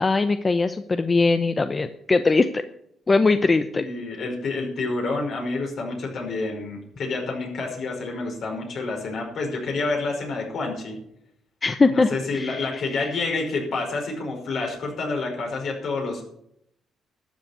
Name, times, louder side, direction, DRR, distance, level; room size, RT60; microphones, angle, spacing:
voice 1, 0.0-2.6 3.1-3.8 11.6-12.8, left 3 dB, 30° left, 10 dB, 0.7 m, -21 dB
voice 2, 3.7-11.0 11.9-16.2, left 3 dB, 65° left, 1 dB, 5.3 m, -28 dB
12.5 x 7.2 x 9.5 m, 0.74 s
cardioid pair, 90°, 0 cm